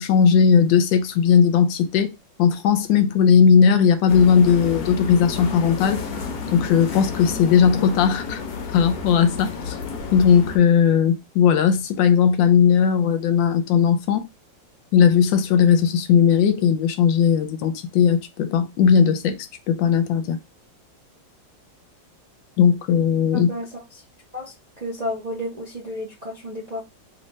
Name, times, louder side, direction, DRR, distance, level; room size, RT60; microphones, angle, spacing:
voice 1, 0.0-2.1 2.4-6.0 6.5-8.4 8.7-9.8 10.1-14.2 14.9-20.4 22.6-23.5, left 7 dB, 80° left, 1.3 m, -17 dB
sound 1, 4.1-10.6, left 5 dB, 65° left, 1.2 m, -31 dB
voice 2, 23.3-23.7 24.3-24.5 24.8-26.8, left 1 dB, 45° right, 0.5 m, -31 dB
3.2 x 2.8 x 3.1 m
omnidirectional pair, 2.0 m